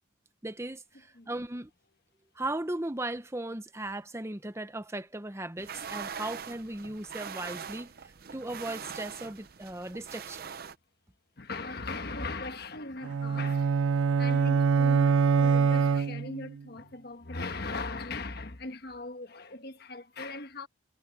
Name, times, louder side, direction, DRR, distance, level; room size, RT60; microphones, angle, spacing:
voice 1, 0.4-1.7 2.3-7.9 8.3-10.5, right 1 dB, 15° right, 0.9 m, -37 dB
sound 1, 5.6-10.8, right 7 dB, 50° right, 0.6 m, -42 dB
voice 2, 11.4-13.7 14.2-20.7, left 3 dB, 50° left, 1.4 m, -39 dB
sound 2, 13.0-16.6, right 5 dB, 85° right, 0.4 m, -24 dB
head